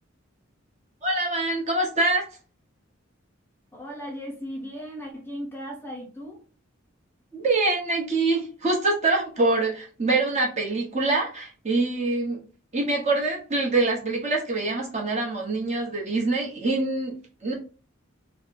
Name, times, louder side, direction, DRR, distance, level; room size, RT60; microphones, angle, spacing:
voice 1, 1.0-2.2 7.3-12.4 12.7-17.5, right 2 dB, 35° right, -2 dB, 1.1 m, -25 dB
voice 2, 3.7-6.4, equal, 10° left, -1 dB, 0.5 m, -37 dB
2.9 x 2.2 x 4.2 m, 0.37 s
head